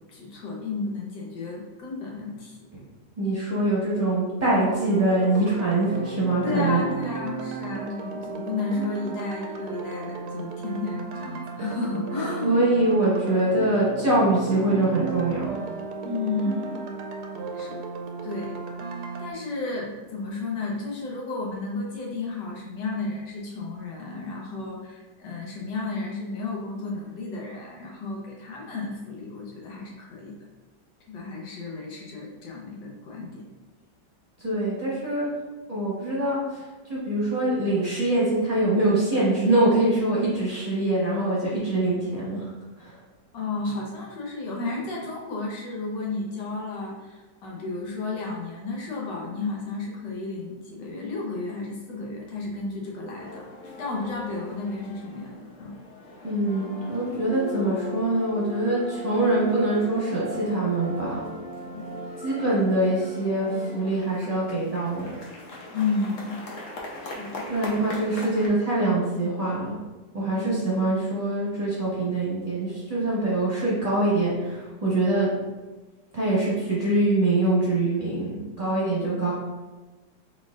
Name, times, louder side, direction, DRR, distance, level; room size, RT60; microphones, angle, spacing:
voice 1, 0.1-2.6 6.4-12.6 16.0-16.7 17.5-17.8 18.2-18.6 19.2-30.3 31.1-33.4 43.3-53.5 53.8-55.8 61.7-61.9 65.7-66.4 67.0-67.5 70.3-70.5 79.0-79.1, left 3 dB, 75° left, -2 dB, 1.6 m, -32 dB
voice 2, 3.2-6.8 12.4-15.6 34.4-35.3 35.7-42.5 42.8-43.0 56.2-61.2 62.2-65.1 67.5-69.8 70.1-75.3 76.1-79.3, right 2 dB, 25° right, -8 dB, 1.0 m, -24 dB
sound 1, 4.5-19.3, right 4 dB, 75° right, 1.1 m, -34 dB
sound 2, 53.2-68.5, left 1 dB, 55° left, 1.1 m, -39 dB
4.7 x 4.2 x 2.5 m, 1.2 s
omnidirectional pair, 1.9 m